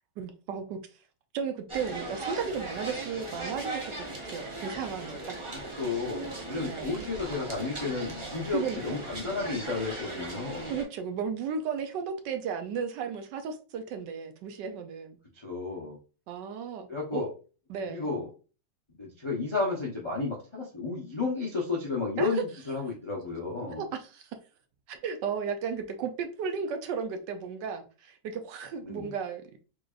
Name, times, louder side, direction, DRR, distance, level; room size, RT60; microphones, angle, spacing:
voice 1, 0.2-0.8 1.3-5.4 6.6-6.9 8.5-9.1 10.7-15.2 16.3-17.3 17.7-18.1 22.2-22.4 23.8-24.3 24.9-29.6, right 6 dB, 75° right, 1.2 m, -34 dB
sound 1, 1.7-10.8, right 2 dB, 45° right, 0.3 m, -38 dB
voice 2, 5.5-10.7 15.3-16.0 16.9-17.3 17.9-18.3 18.9-23.8 28.8-29.1, left 4 dB, 40° left, 0.4 m, -32 dB
3.9 x 3.3 x 2.4 m
omnidirectional pair, 1.9 m